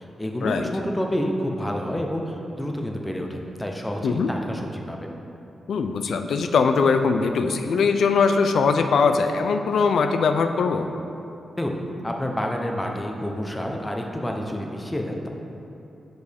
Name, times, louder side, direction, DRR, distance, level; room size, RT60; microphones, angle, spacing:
voice 1, 0.0-5.1 11.6-11.7 12.0-15.3, equal, 15° left, 1 dB, 0.7 m, -29 dB
voice 2, 5.7-10.9, left 5 dB, 75° left, 7 dB, 0.3 m, -21 dB
6.3 x 4.8 x 3.5 m, 2.8 s
cardioid pair, 65°, 0 cm